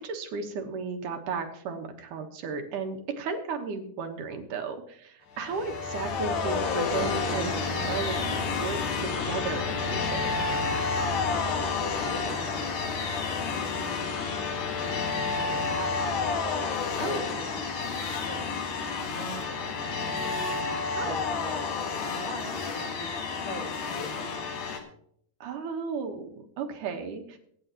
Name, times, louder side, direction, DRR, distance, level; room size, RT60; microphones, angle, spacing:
voice 1, 0.0-10.2 17.0-17.2 21.0-21.2 25.4-27.4, right 5 dB, 80° right, 4 dB, 2.8 m, -34 dB
sound 1, 5.4-24.8, left 4 dB, 70° left, 3.1 m, -30 dB
voice 2, 11.8-13.2 13.5-16.5 17.0-20.5 21.0-24.8, left 1 dB, 40° left, 0 dB, 3.0 m, -43 dB
23.5 x 9.3 x 3.0 m, 0.66 s
omnidirectional pair, 3.7 m